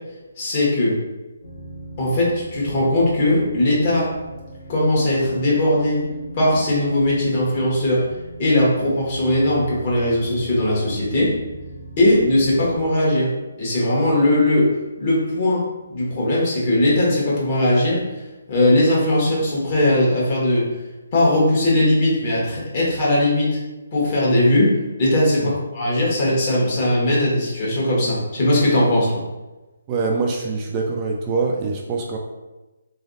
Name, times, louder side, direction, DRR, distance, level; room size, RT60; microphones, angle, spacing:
voice 1, 0.4-1.0 2.0-4.1 4.7-6.0 6.3-8.0 8.4-11.3 12.0-13.3 13.6-14.7 15.0-15.6 15.9-18.0 18.5-20.7 21.1-23.6 23.9-24.7 25.0-29.2, left 1 dB, 40° left, -6 dB, 1.4 m, -19 dB
sound 1, 1.4-12.9, right 1 dB, 60° left, 1.0 m, -38 dB
voice 2, 29.9-32.2, right 4 dB, 25° right, 0 dB, 0.3 m, -24 dB
3.2 x 3.0 x 2.7 m, 1.1 s
figure-of-eight pair, 145°, 0 cm